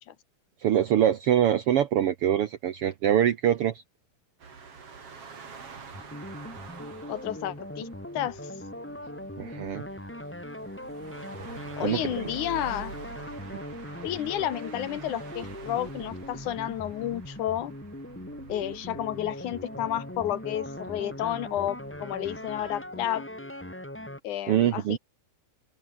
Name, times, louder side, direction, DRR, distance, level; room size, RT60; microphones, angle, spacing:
voice 1, 0.6-3.8 9.4-9.8 11.8-12.3 24.5-25.0, right 10 dB, 65° right, 1.4 m, -24 dB
sound 1, 4.4-22.9, right 5 dB, 45° right, 4.1 m, -47 dB
sound 2, 5.9-24.2, left 1 dB, 5° left, 1.7 m, -40 dB
voice 2, 7.1-7.9 8.1-8.5 11.8-12.9 14.0-17.7 18.5-23.2 24.2-25.0, left 12 dB, 75° left, 2.7 m, -31 dB
open air
omnidirectional pair, 3.6 m